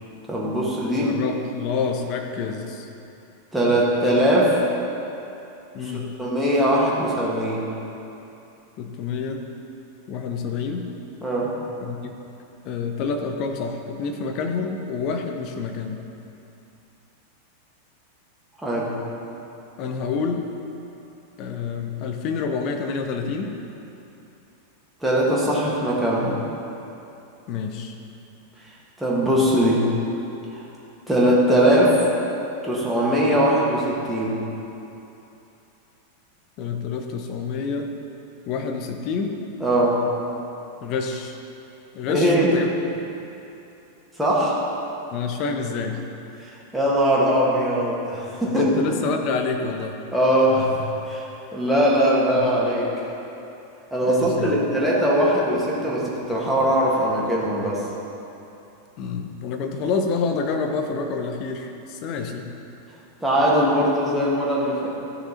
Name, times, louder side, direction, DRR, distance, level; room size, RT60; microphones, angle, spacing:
voice 1, 0.3-1.1 3.5-4.6 6.2-7.6 11.2-11.5 18.6-18.9 25.0-26.4 29.0-29.8 30.5-30.6 31.1-32.0 32.6-34.4 39.6-40.0 42.1-42.5 44.2-44.6 46.4-48.7 50.1-50.7 51.1-51.2 51.5-52.9 53.9-57.8 63.2-64.9, equal, 5° right, -6 dB, 2.3 m, -20 dB
voice 2, 0.9-2.9 5.7-6.1 8.8-9.5 10.1-10.9 11.8-12.1 12.6-16.0 19.8-20.5 21.4-23.6 27.5-28.0 36.6-37.9 38.5-39.4 40.8-41.4 41.9-42.7 45.1-46.0 48.4-50.0 52.3-52.5 54.0-54.7 59.0-62.5, left 5 dB, 40° left, 4 dB, 1.0 m, -28 dB
14.0 x 6.4 x 4.4 m, 2.9 s
figure-of-eight pair, 90°, 0 cm